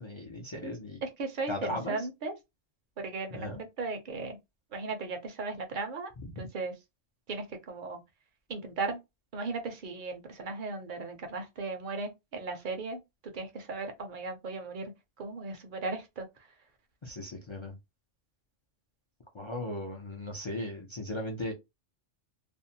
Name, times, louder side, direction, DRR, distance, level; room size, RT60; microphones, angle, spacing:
voice 1, 0.0-1.0 1.5-2.0 3.3-3.6 17.0-17.7 19.3-21.5, left 1 dB, 45° left, 0.3 m, -37 dB
voice 2, 0.6-2.3 3.0-3.5 3.8-4.4 4.7-6.1 6.4-6.7 7.3-8.0 8.5-9.0 9.3-13.0 13.3-14.9 15.2-16.3, right 3 dB, 55° right, 0.7 m, -36 dB
2.6 x 2.1 x 2.6 m
omnidirectional pair, 1.2 m